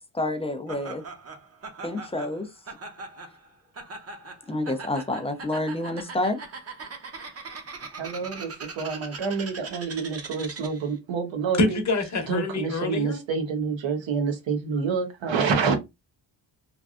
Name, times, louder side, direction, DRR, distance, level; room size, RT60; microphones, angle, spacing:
voice 1, 0.1-1.0 1.8-2.5 4.5-6.4, left 1 dB, 15° left, 0.3 m, -28 dB
Laughter, 0.7-10.9, right 4 dB, 35° right, 0.7 m, -41 dB
voice 2, 7.9-11.8 12.3-15.8, right 5 dB, 80° right, 1.0 m, -28 dB
voice 3, 11.6-13.2, left 2 dB, 40° left, 0.8 m, -26 dB
3.2 x 2.5 x 2.3 m
wide cardioid pair, 155°, 45 cm